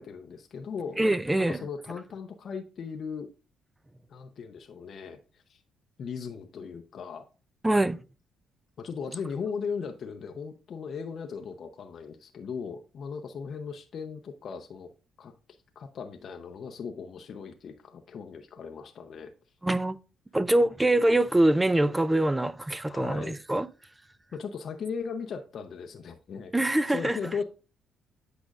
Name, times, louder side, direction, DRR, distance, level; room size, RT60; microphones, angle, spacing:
voice 1, 0.0-1.0 1.3-3.3 4.1-5.6 6.0-7.2 8.8-14.9 15.2-15.3 15.8-19.3 22.9-23.4 24.3-26.5 26.9-27.4, left 6 dB, 60° left, 0.6 m, -37 dB
voice 2, 1.0-1.6 7.6-8.0 19.6-20.0 20.3-23.7 26.5-27.2, right 1 dB, 10° right, 0.4 m, -24 dB
8.2 x 5.1 x 2.4 m
cardioid pair, 90°, 0 cm